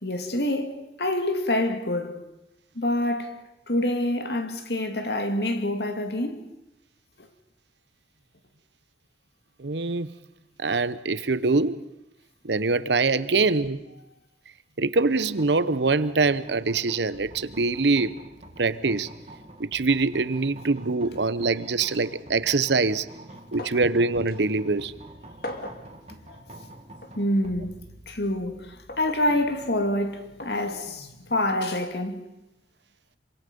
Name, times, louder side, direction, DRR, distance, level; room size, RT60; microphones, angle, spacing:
voice 1, 0.0-2.2 2.8-3.4 3.7-6.4 26.3-26.4 27.2-27.8 28.1-32.3, left 1 dB, 70° left, 2.2 m, -27 dB
voice 2, 9.6-10.1 10.6-11.8 12.4-13.8 14.8-18.2 18.6-19.1 19.6-23.1 23.5-24.9, right 3 dB, 80° right, 0.9 m, -24 dB
sound 1, 14.9-32.2, right 1 dB, 35° right, 2.5 m, -48 dB
sound 2, 23.6-23.9 24.3-24.4 25.4-25.9 27.0-27.2 28.9-29.2 30.4-30.6 31.8-32.0, left 1 dB, 55° left, 2.3 m, -38 dB
27.0 x 24.5 x 5.3 m
head